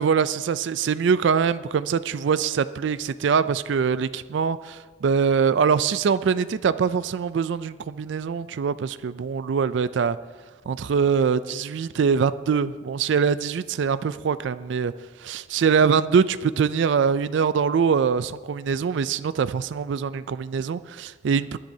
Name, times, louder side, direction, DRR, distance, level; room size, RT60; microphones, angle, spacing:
voice 1, 0.0-10.2 10.7-14.9 15.2-21.6, right 6 dB, 70° right, 14 dB, 0.3 m, -23 dB
19.0 x 10.5 x 2.7 m, 1.5 s
head